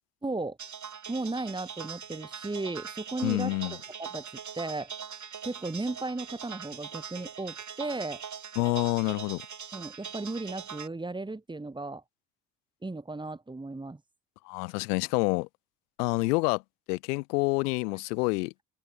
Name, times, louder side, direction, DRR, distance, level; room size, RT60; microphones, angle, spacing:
voice 1, 0.2-0.6 1.1-4.9 5.4-8.2 9.7-12.0 12.8-14.0, right 2 dB, 10° right, 1.2 m, -35 dB
sound 1, 0.6-10.9, right 7 dB, 40° right, 3.3 m, -42 dB
voice 2, 3.2-3.8 8.6-9.4 14.5-15.5 16.0-16.6 16.9-18.5, left 26 dB, 75° left, 0.6 m, -27 dB
hypercardioid pair, 50°, 47 cm